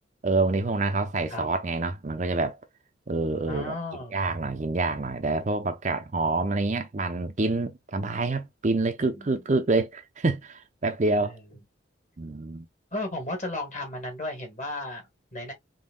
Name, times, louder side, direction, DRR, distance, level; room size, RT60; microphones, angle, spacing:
voice 1, 0.2-2.6 3.1-3.7 4.1-11.4 12.2-12.7, right 3 dB, 40° right, 0.5 m, -27 dB
voice 2, 3.5-4.2 9.1-9.4 11.2-11.4 12.9-15.5, left 2 dB, 40° left, 1.8 m, -35 dB
5.3 x 2.8 x 2.2 m
head